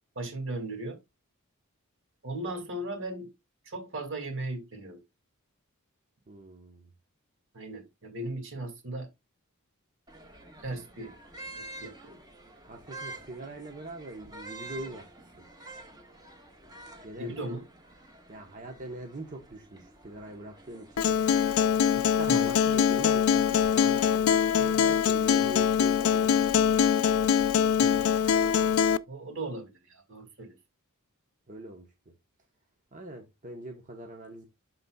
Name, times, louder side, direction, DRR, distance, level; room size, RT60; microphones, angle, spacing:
voice 1, 0.2-1.0 2.2-3.3 3.7-5.0 7.5-9.1 10.6-11.1 11.6-12.2 17.2-17.6 22.3-22.5 27.8-28.2 29.1-30.6, right 2 dB, 60° right, 2.2 m, -37 dB
voice 2, 6.3-6.9 12.7-15.1 15.4-15.5 17.0-17.4 18.3-21.1 21.9-26.4 31.5-31.9 32.9-34.4, right 2 dB, 40° right, 1.0 m, -42 dB
sound 1, 10.1-28.7, right 2 dB, 20° right, 1.5 m, -49 dB
Acoustic guitar, 21.0-29.0, left 8 dB, 75° left, 0.4 m, -23 dB
12.0 x 4.1 x 2.3 m
head